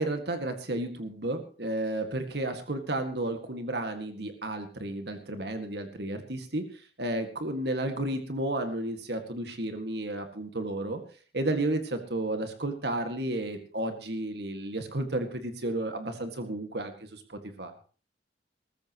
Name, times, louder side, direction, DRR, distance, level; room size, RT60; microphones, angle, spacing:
voice 1, 0.0-11.0 11.3-17.2 17.6-17.7, right 1 dB, 65° right, 6 dB, 2.0 m, -32 dB
20.0 x 15.0 x 3.0 m, 0.39 s
head